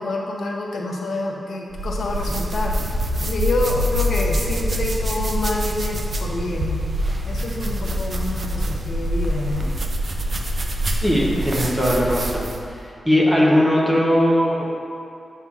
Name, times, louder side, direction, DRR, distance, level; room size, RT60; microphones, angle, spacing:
voice 1, 0.0-2.8 3.2-6.8 7.2-9.7, left 2 dB, 65° left, -1 dB, 0.7 m, -27 dB
sound 1, 1.7-12.7, equal, 40° right, 0.5 m, -25 dB
voice 2, 11.0-12.5 13.0-14.7, equal, 10° right, -4 dB, 0.7 m, -18 dB
8.0 x 5.5 x 2.4 m, 2.5 s
wide cardioid pair, 160°, 0 cm